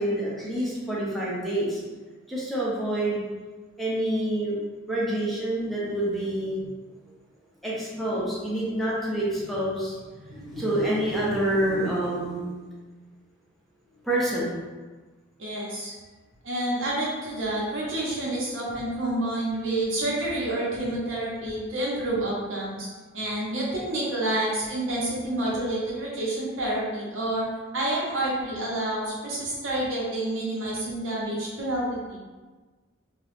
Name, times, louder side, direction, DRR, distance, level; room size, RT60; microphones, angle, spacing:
voice 1, 0.0-1.8 2.3-3.2 3.8-4.6 4.9-6.7 7.6-10.0 10.3-12.5 14.0-14.6, right 1 dB, ahead, -7 dB, 0.6 m, -27 dB
voice 2, 15.4-15.9 16.4-22.9 23.1-27.5 27.7-32.2, right 1 dB, 80° right, -6 dB, 1.0 m, -28 dB
2.9 x 2.4 x 3.3 m, 1.3 s
head